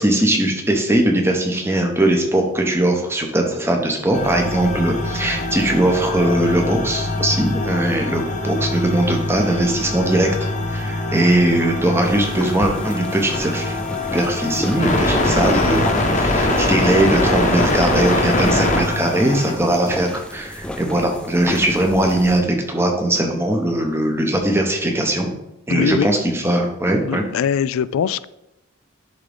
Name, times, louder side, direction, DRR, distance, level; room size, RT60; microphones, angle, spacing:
voice 1, 0.0-13.8 14.1-15.9 16.2-25.4 25.7-27.2, right 1 dB, 10° right, 2 dB, 0.8 m, -20 dB
sound 1, 4.1-19.5, left 2 dB, 35° left, 0.9 m, -23 dB
sound 2, 12.0-22.4, equal, 5° left, 0.4 m, -32 dB
voice 2, 25.7-26.1 27.1-28.2, left 8 dB, 80° left, 18 dB, 0.3 m, -21 dB
10.5 x 3.7 x 3.5 m, 0.88 s
head